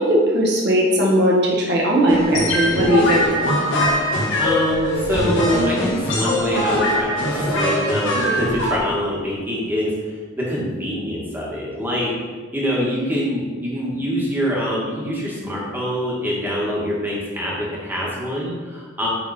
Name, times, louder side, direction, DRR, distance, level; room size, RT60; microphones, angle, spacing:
voice 1, 0.0-3.2, equal, 55° right, -3 dB, 1.8 m, -18 dB
sound 1, 2.1-8.8, equal, 60° left, 1.6 m, -21 dB
voice 2, 4.4-10.0 10.4-12.1 12.5-19.1, equal, 10° right, -5 dB, 1.9 m, -24 dB
9.5 x 4.1 x 4.4 m, 1.5 s
head